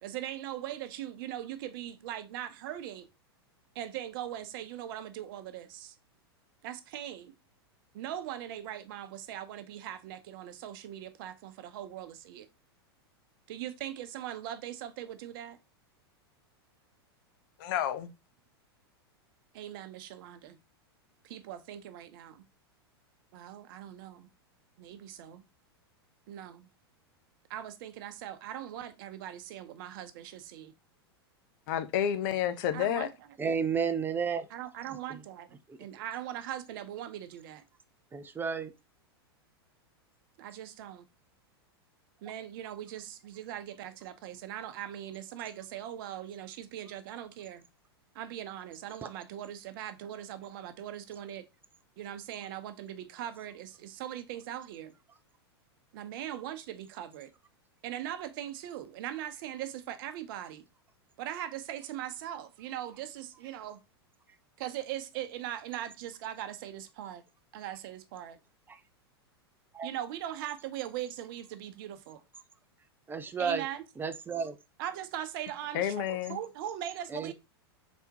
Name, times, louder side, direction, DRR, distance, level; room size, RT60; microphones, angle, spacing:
voice 1, 0.0-3.1 3.7-5.9 6.6-7.3 7.9-12.5 13.5-15.6 19.5-20.6 21.2-22.4 23.3-24.3 24.8-25.4 26.3-26.7 27.5-30.7 32.7-33.1 34.5-37.6 40.4-41.1 42.2-47.6 48.1-51.5 52.0-54.9 55.9-57.3 57.8-60.6 61.2-63.8 64.6-67.2 67.5-68.4 69.8-72.2 73.4-73.8 74.8-77.3, right 11 dB, 55° right, 0.7 m, -40 dB
voice 2, 17.6-18.1 31.7-33.1 75.7-76.4, left 10 dB, 55° left, 0.7 m, -30 dB
voice 3, 33.4-34.5 35.1-35.2 35.7-35.8 38.1-38.7 68.7-68.8 69.7-69.9 73.1-73.7 74.0-74.6 77.1-77.3, right 6 dB, 15° right, 0.5 m, -32 dB
4.2 x 3.5 x 2.8 m
hypercardioid pair, 105°, 13 cm